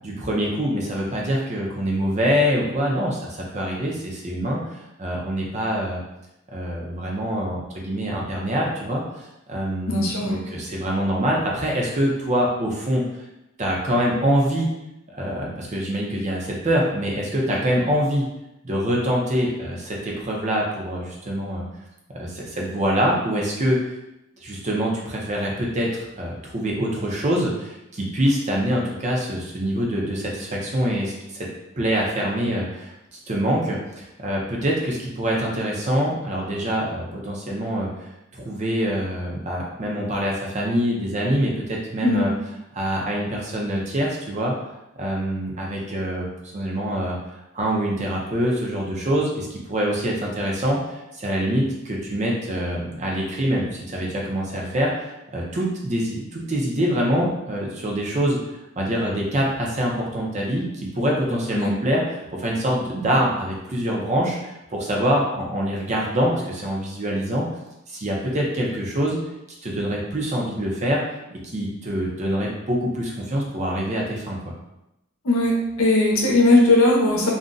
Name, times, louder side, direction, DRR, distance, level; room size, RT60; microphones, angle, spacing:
voice 1, 0.0-4.6 5.0-6.0 6.5-13.0 13.6-14.7 15.1-18.3 18.6-21.6 22.1-23.8 24.4-31.5 31.8-37.9 38.3-42.3 42.7-44.5 45.0-47.2 47.5-50.8 51.1-58.4 58.8-67.5 67.9-69.2 69.6-71.0 71.3-74.5, equal, 35° right, -2 dB, 0.6 m, -25 dB
voice 2, 9.9-10.3 42.0-42.3 61.5-61.7 75.2-77.3, left 2 dB, 80° left, -2 dB, 0.7 m, -18 dB
2.5 x 2.2 x 3.8 m, 0.88 s
head